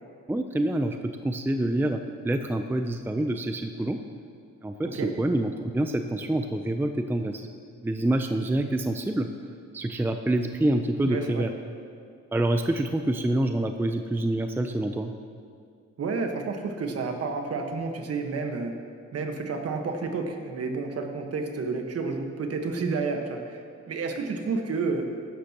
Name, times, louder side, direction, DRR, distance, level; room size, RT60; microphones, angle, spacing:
voice 1, 0.3-4.0 4.6-7.5 7.8-9.3 9.7-11.5 12.3-15.1, right 1 dB, 5° right, 6 dB, 0.5 m, -27 dB
voice 2, 11.0-11.5 16.0-18.7 19.1-25.1, right 4 dB, 50° right, 4 dB, 1.5 m, -30 dB
15.5 x 11.5 x 3.0 m, 2.3 s
cardioid pair, 90°, 30 cm